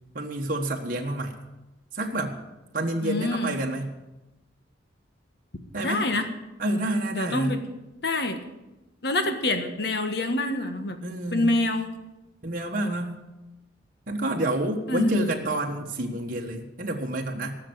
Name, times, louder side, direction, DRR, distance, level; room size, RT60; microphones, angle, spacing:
voice 1, 0.1-1.3 1.9-2.3 2.7-3.9 5.7-6.1 6.6-7.6 11.0-11.5 12.4-13.2 14.1-17.6, right 1 dB, 50° right, 0 dB, 1.4 m, -28 dB
voice 2, 3.0-3.5 5.8-6.3 7.1-7.6 8.0-8.4 9.0-11.0 11.3-11.9 14.9-15.3, left 2 dB, 60° left, 7 dB, 1.4 m, -26 dB
17.5 x 6.7 x 8.1 m, 1.0 s
head